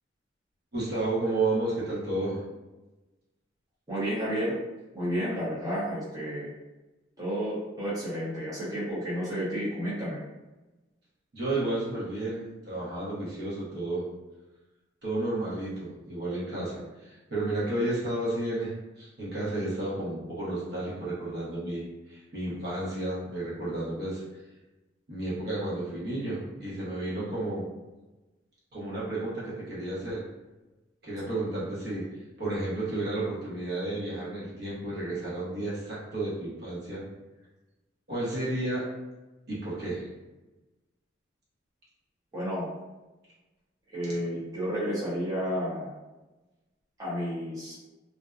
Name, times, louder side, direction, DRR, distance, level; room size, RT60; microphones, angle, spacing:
voice 1, 0.7-2.4 11.3-14.0 15.0-24.2 25.1-27.7 28.7-30.2 31.0-32.1 32.4-37.0 38.1-38.8 39.5-40.1, right 2 dB, 55° right, -8 dB, 0.9 m, -32 dB
voice 2, 3.9-4.6 4.9-6.5 7.2-10.2 42.3-42.7 43.9-45.9 47.0-47.7, equal, 20° right, -10 dB, 0.7 m, -31 dB
2.6 x 2.2 x 2.3 m, 1.1 s
head